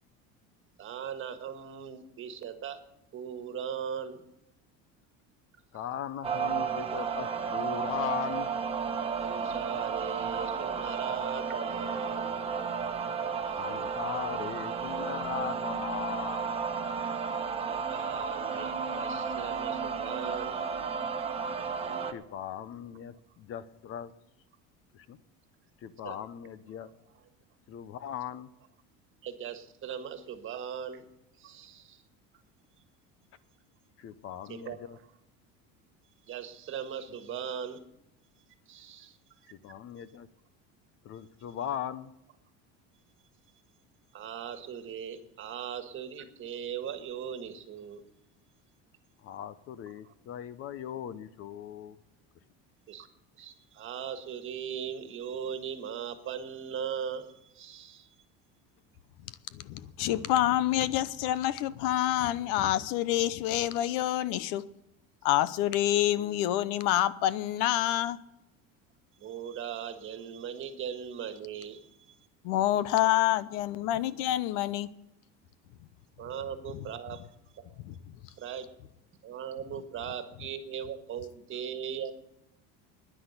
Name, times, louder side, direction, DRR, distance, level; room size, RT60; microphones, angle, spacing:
voice 1, 0.8-2.8 3.1-4.2 9.2-12.4 17.6-20.6 21.8-21.9 26.0-26.2 29.2-31.1 31.4-32.0 34.5-35.0 36.3-37.8 38.7-39.2 39.4-39.5 44.1-48.0 50.0-50.1 52.9-53.1 53.4-58.1 69.2-72.2 76.2-77.2 77.5-77.8 78.4-78.7 79.2-82.1, right 8 dB, 40° right, 1.6 m, -39 dB
voice 2, 5.7-8.5 13.6-16.4 22.0-24.1 24.9-25.2 25.8-26.9 27.7-28.5 34.0-35.0 39.5-40.3 41.0-42.1 49.2-52.0, left 9 dB, 45° left, 0.8 m, -38 dB
sound 1, 6.2-22.1, right 6 dB, 20° right, 1.3 m, -33 dB
voice 3, 59.5-64.6 65.2-68.2 72.4-74.9 76.7-76.8 77.8-78.1, left 13 dB, 80° left, 0.8 m, -27 dB
10.0 x 10.0 x 8.1 m
cardioid pair, 140°, 31 cm